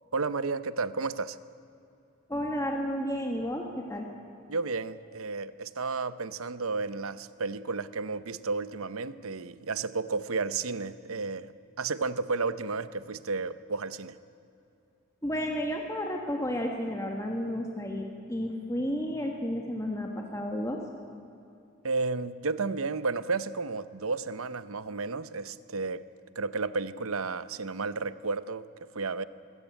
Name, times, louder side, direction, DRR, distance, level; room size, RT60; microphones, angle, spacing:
voice 1, 0.0-1.4 4.5-14.2 21.8-26.0 26.3-29.2, right 4 dB, 75° right, 15 dB, 0.8 m, -32 dB
voice 2, 2.3-4.1 15.2-20.8, equal, 15° left, 1 dB, 1.6 m, -32 dB
24.0 x 17.0 x 9.1 m, 2.6 s
head